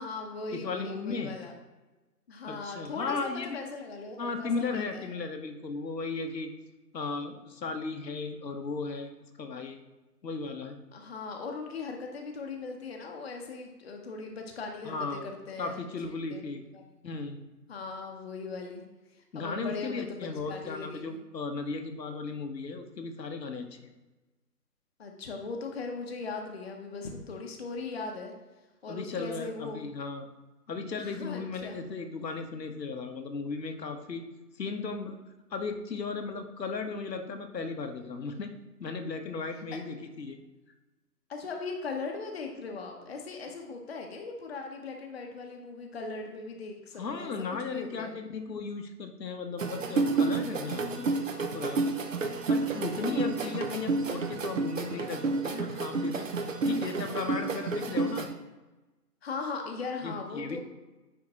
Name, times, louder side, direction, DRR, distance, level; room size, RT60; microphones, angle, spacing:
voice 1, 0.0-1.5 2.3-5.1 10.9-16.8 17.7-18.9 19.3-20.2 20.5-21.2 25.0-28.3 28.8-29.8 31.0-31.8 41.3-47.3 47.6-48.1 53.0-53.5 59.2-60.6, left 4 dB, 40° left, 2 dB, 0.8 m, -39 dB
voice 2, 0.5-1.3 2.5-3.6 4.2-6.5 6.9-9.1 9.4-9.8 10.2-10.8 14.8-15.2 15.6-16.6 17.0-17.4 19.3-23.9 28.9-30.3 30.7-34.2 34.6-35.2 35.5-38.5 38.8-40.4 47.0-51.1 51.3-51.8 52.5-56.3 56.6-58.3 60.0-60.6, left 4 dB, 80° left, 6 dB, 1.0 m, -36 dB
sound 1, 49.6-58.2, right 3 dB, 50° right, 0.8 m, -30 dB
9.5 x 3.6 x 2.9 m, 1.1 s
figure-of-eight pair, 155°, 49 cm